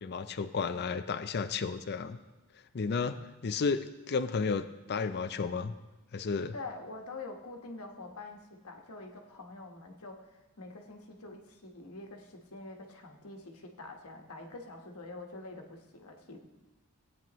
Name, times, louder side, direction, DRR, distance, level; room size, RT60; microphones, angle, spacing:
voice 1, 0.0-2.2 2.7-5.7 6.1-6.5, left 5 dB, 50° left, 11 dB, 0.5 m, -32 dB
voice 2, 6.5-16.4, left 2 dB, 75° left, 3 dB, 1.3 m, -46 dB
17.5 x 9.0 x 3.1 m, 1.1 s
head